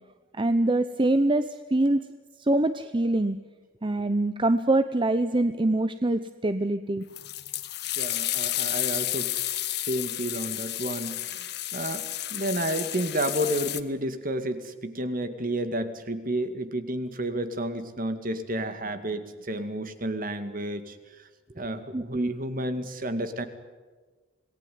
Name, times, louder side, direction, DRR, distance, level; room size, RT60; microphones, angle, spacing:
voice 1, 0.3-2.0 2.4-3.4 3.8-7.0 21.9-22.3, right 2 dB, 25° right, 11 dB, 0.8 m, -24 dB
sound 1, 7.2-13.8, left 14 dB, 60° left, 1.3 m, -31 dB
voice 2, 8.0-9.4 9.7-21.3 21.6-23.5, right 1 dB, 45° right, 9 dB, 2.2 m, -31 dB
27.0 x 19.0 x 9.5 m, 1.3 s
head